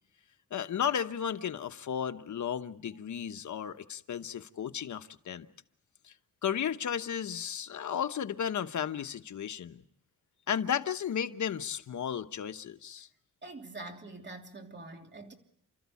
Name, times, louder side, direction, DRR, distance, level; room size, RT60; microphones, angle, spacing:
voice 1, 0.5-5.5 6.4-9.8 10.5-13.1, left 8 dB, 65° left, 1.1 m, -34 dB
voice 2, 13.4-15.3, right 2 dB, 35° right, 3.0 m, -45 dB
30.0 x 14.0 x 8.4 m
wide cardioid pair, 115°, 31 cm